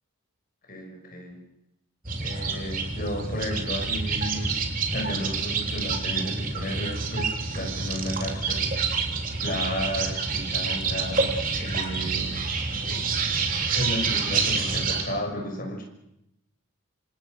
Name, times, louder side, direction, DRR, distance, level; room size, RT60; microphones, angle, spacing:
voice 1, 0.7-1.4 2.2-4.6 4.9-9.0 9.4-12.4 13.7-15.8, equal, 40° left, 2 dB, 6.2 m, -33 dB
sound 1, 2.0-15.0, right 4 dB, 40° right, 3.5 m, -28 dB
27.0 x 27.0 x 6.5 m, 0.84 s
head